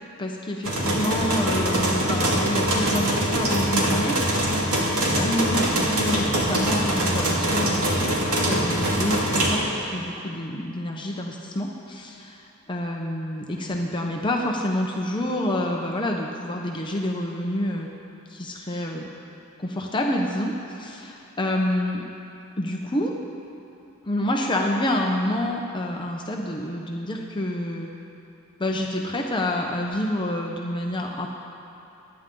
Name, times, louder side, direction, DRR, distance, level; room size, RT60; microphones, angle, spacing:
voice 1, 0.2-4.6 5.1-9.6 9.9-12.4 12.7-17.9 18.3-19.1 19.6-22.0 22.6-23.1 24.0-27.9 28.6-31.3, left 1 dB, 20° left, 0 dB, 0.8 m, -28 dB
sound 1, 0.6-9.5, right 1 dB, 70° right, 2.7 m, -23 dB
26.0 x 9.9 x 3.8 m, 2.8 s
head